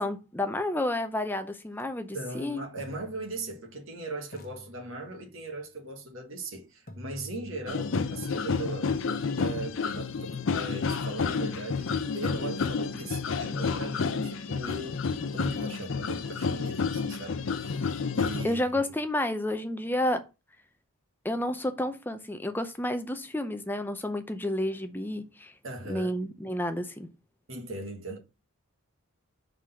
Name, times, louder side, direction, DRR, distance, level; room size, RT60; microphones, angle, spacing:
voice 1, 0.0-2.6 18.4-20.2 21.2-25.5 25.9-27.1, left 1 dB, 10° left, 0.5 m, -30 dB
sound 1, 1.7-1.8 2.8-3.9 4.3-5.6 6.9-10.8, left 1 dB, 40° left, 1.1 m, -50 dB
voice 2, 2.1-8.9 9.4-15.0 15.3-18.6 25.6-26.2 27.5-28.2, right 2 dB, 60° right, 1.6 m, -39 dB
sound 2, 7.7-18.5, left 5 dB, 60° left, 0.5 m, -30 dB
4.8 x 3.9 x 5.5 m
head